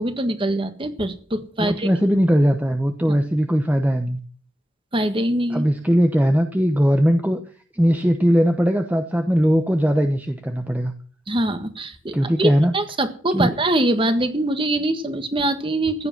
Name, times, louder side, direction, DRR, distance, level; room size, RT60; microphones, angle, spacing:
voice 1, 0.0-1.9 4.9-5.6 11.3-16.1, right 1 dB, 25° right, 8 dB, 1.6 m, -23 dB
voice 2, 1.6-4.2 5.5-7.4 7.7-10.9 12.1-12.7 13.3-13.5, equal, 10° right, 5 dB, 0.9 m, -19 dB
15.0 x 10.0 x 6.0 m, 0.43 s
head